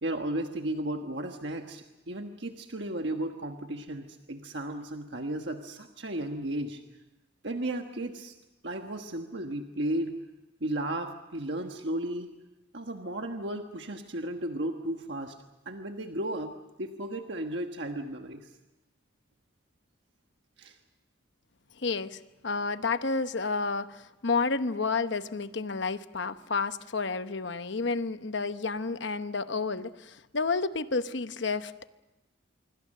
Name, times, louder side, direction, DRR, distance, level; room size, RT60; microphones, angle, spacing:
voice 1, 0.0-6.8 7.4-8.3 8.6-10.2 10.6-12.3 12.7-15.4 15.6-18.5 20.6-20.8, right 1 dB, 60° right, 4 dB, 1.4 m, -34 dB
voice 2, 21.8-31.9, left 4 dB, 60° left, 11 dB, 0.9 m, -30 dB
26.5 x 24.0 x 6.6 m, 1.0 s
head